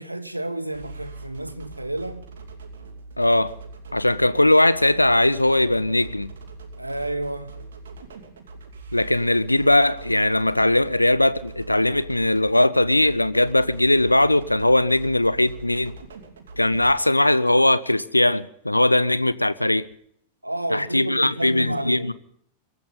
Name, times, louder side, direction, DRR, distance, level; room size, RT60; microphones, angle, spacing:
voice 1, 0.0-2.2 6.8-7.5 20.4-22.1, right 1 dB, 85° right, 1.3 m, -30 dB
sound 1, 0.7-16.9, right 3 dB, 65° right, 2.7 m, -42 dB
voice 2, 3.2-3.6 3.9-6.3 8.9-15.9 16.6-19.9 20.7-22.1, left 1 dB, 85° left, 0.6 m, -20 dB
24.0 x 14.0 x 3.9 m
figure-of-eight pair, 90°, 0 cm